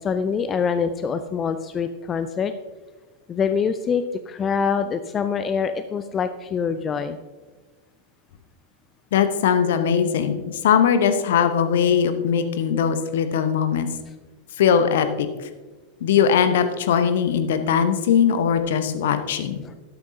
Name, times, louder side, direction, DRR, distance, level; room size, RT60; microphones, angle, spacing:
voice 1, 0.0-2.5 3.3-7.2 19.6-19.7, left 6 dB, 25° left, 10 dB, 0.5 m, -25 dB
voice 2, 9.1-13.9 14.6-15.3 16.0-19.6, left 7 dB, 55° left, 10 dB, 1.0 m, -20 dB
13.0 x 12.0 x 2.8 m, 1.3 s
figure-of-eight pair, 90°, 0 cm